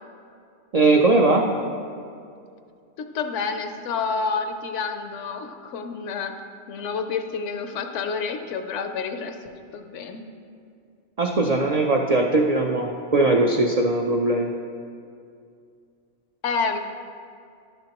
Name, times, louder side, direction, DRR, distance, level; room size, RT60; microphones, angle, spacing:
voice 1, 0.7-1.4 11.2-14.5, right 2 dB, 85° right, 1 dB, 0.3 m, -20 dB
voice 2, 3.0-6.3 6.7-9.4 9.7-10.3 16.4-16.8, left 5 dB, 75° left, 6 dB, 0.9 m, -29 dB
10.5 x 6.8 x 2.9 m, 2.4 s
omnidirectional pair, 1.3 m